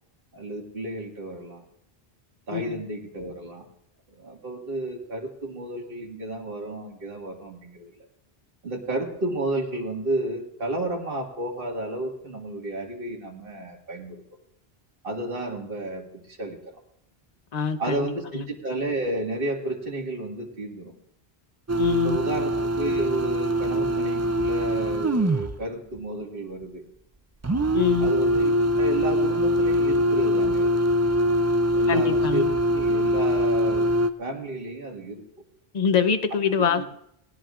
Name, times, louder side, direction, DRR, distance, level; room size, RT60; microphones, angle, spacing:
voice 1, 0.3-1.6 2.5-3.7 4.1-8.0 8.6-14.2 15.0-16.8 17.8-20.9 22.0-26.8 28.0-28.5 28.8-30.8 31.7-32.4 32.7-33.9 34.2-35.2 36.7-36.9, right 2 dB, 60° right, -1 dB, 2.2 m, -32 dB
voice 2, 17.5-18.1 18.3-18.4 21.8-22.2 27.7-28.1 31.9-32.4 35.7-36.8, left 7 dB, 45° left, 9 dB, 0.9 m, -24 dB
sound 1, 21.7-25.6 27.4-34.1, equal, 25° right, 0.4 m, -23 dB
21.0 x 17.0 x 2.5 m, 0.77 s
omnidirectional pair, 1.0 m